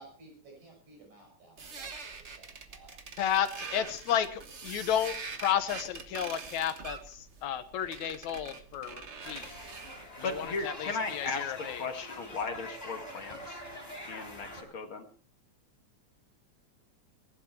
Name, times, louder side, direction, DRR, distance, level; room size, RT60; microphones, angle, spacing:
voice 1, 0.0-2.9 10.1-10.3, right 2 dB, 70° right, 0 dB, 7.5 m, -55 dB
sound 1, 1.6-10.0, right 5 dB, 45° right, 0.8 m, -44 dB
voice 2, 3.2-9.5 10.2-12.1, left 9 dB, 75° left, 10 dB, 2.5 m, -32 dB
sound 2, 9.2-14.6, left 1 dB, 10° left, 4.6 m, -44 dB
voice 3, 10.2-11.5 11.8-13.6 14.1-15.1, left 4 dB, 50° left, 5 dB, 2.2 m, -36 dB
19.5 x 11.5 x 4.4 m, 0.43 s
omnidirectional pair, 3.3 m